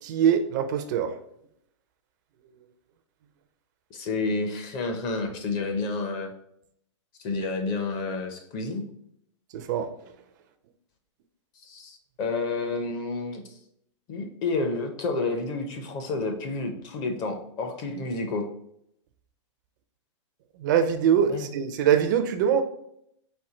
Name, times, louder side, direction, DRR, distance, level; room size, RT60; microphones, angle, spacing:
voice 1, 0.0-1.1 9.5-9.9 20.6-22.6, right 8 dB, 40° right, 8 dB, 0.4 m, -23 dB
voice 2, 3.9-6.3 7.2-8.8 11.6-13.4 14.1-18.5 21.3-21.5, left 3 dB, 25° left, 5 dB, 0.5 m, -30 dB
4.3 x 2.6 x 3.8 m, 0.73 s
hypercardioid pair, 155°, 16 cm